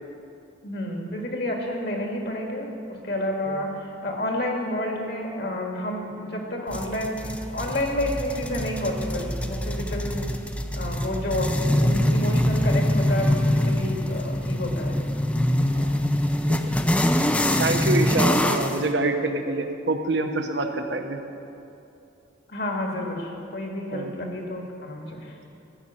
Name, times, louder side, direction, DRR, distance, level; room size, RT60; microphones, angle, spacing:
voice 1, 0.6-3.7 4.0-7.2 7.5-10.3 10.7-15.0 22.5-25.3, left 1 dB, 55° left, 1 dB, 1.8 m, -30 dB
sound 1, 6.7-18.8, left 1 dB, 5° left, 0.4 m, -24 dB
voice 2, 17.6-21.2 23.9-24.1, right 2 dB, 65° right, 5 dB, 0.8 m, -26 dB
14.0 x 5.3 x 8.8 m, 2.7 s
head